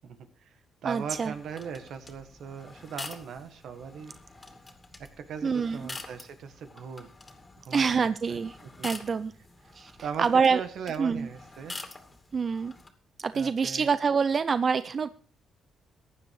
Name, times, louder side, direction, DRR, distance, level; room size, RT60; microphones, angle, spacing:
voice 1, 0.0-4.2 5.0-7.1 7.6-8.9 10.0-11.8 13.3-13.9, right 7 dB, 70° right, 9 dB, 1.7 m, -39 dB
voice 2, 0.8-1.3 5.4-5.8 7.7-8.6 8.8-9.3 9.7-9.9 10.2-10.6 11.0-11.3 12.3-12.7 13.2-15.1, right 5 dB, 40° right, 14 dB, 0.5 m, -26 dB
sound 1, 1.0-12.9, left 3 dB, 25° left, 2.5 m, -46 dB
16.0 x 10.0 x 4.8 m, 0.42 s
cardioid pair, 90°, 0 cm